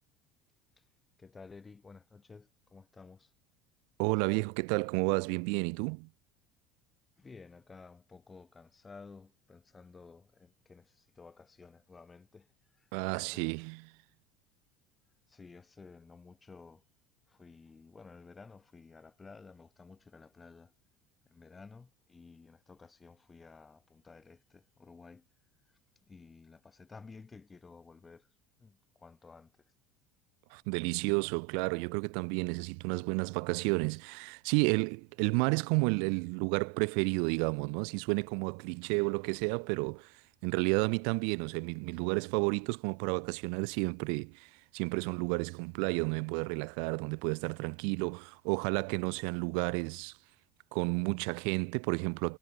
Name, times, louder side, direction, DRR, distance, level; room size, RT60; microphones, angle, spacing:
voice 1, 1.2-3.3 7.2-12.5 12.7-13.5 15.3-16.8 17.3-20.7 21.2-25.3 26.0-28.3 28.6-29.5, left 4 dB, 20° left, 1.5 m, -54 dB
voice 2, 4.0-6.1 12.9-13.8 30.5-50.1 50.7-52.4, right 40 dB or more, 75° right, 0.4 m, -31 dB
supercardioid pair, 90°, 0 cm